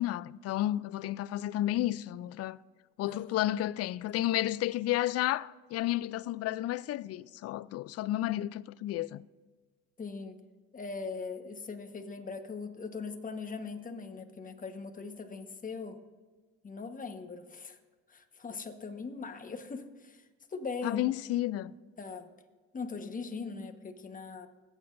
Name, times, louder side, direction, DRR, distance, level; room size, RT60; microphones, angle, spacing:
voice 1, 0.0-2.6 3.0-9.2 20.8-21.7, left 14 dB, 55° left, 0.5 m, -32 dB
voice 2, 10.0-10.4 10.7-16.0 16.6-17.8 18.1-20.2 20.5-21.0 22.0-22.3 22.7-24.5, left 4 dB, 25° left, 1.3 m, -40 dB
25.5 x 8.9 x 2.6 m
supercardioid pair, 85°, 30 cm